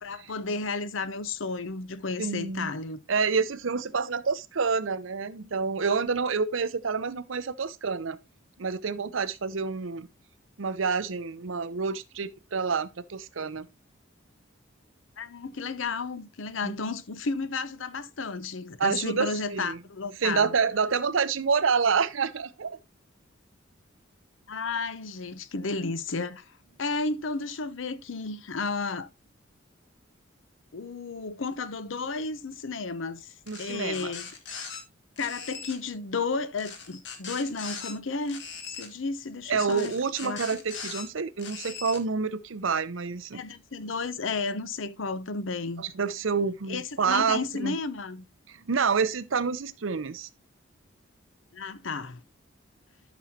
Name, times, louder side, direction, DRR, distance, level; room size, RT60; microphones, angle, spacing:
voice 1, 0.0-3.0 15.2-20.5 24.5-26.4 26.8-29.1 30.7-33.3 33.6-34.3 35.2-38.4 38.7-39.9 40.2-40.4 43.3-45.8 46.7-48.2 51.5-52.2, left 4 dB, 80° left, 0.8 m, -32 dB
voice 2, 2.2-2.7 3.1-8.2 8.6-10.1 10.6-13.7 16.6-16.8 18.8-19.8 20.2-22.8 33.5-34.1 39.5-43.4 45.8-47.8 48.5-50.3, right 5 dB, 80° right, 0.7 m, -28 dB
sound 1, 33.5-34.8 35.2-35.8 36.6-37.9 38.3-38.9 39.7-41.0 41.4-42.0, left 6 dB, 60° left, 1.6 m, -40 dB
12.0 x 6.2 x 2.8 m
head